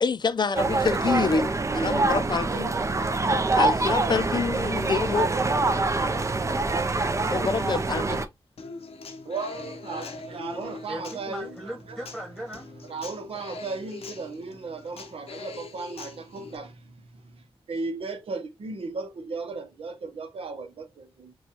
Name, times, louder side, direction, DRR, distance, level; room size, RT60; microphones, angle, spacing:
voice 1, 0.0-2.7 3.5-5.3 7.3-8.2, left 5 dB, 50° left, 0.5 m, -26 dB
sound 1, 0.5-8.2, right 3 dB, 30° right, 0.5 m, -25 dB
Human voice / Acoustic guitar, 8.6-16.6, left 4 dB, 90° left, 0.8 m, -42 dB
voice 2, 9.3-11.5 11.9-12.0 12.9-17.4 17.7-21.3, right 4 dB, 70° right, 0.8 m, -36 dB
voice 3, 10.5-12.7, right 1 dB, ahead, 1.3 m, -38 dB
6.1 x 2.3 x 2.9 m
cardioid pair, 75°, 10 cm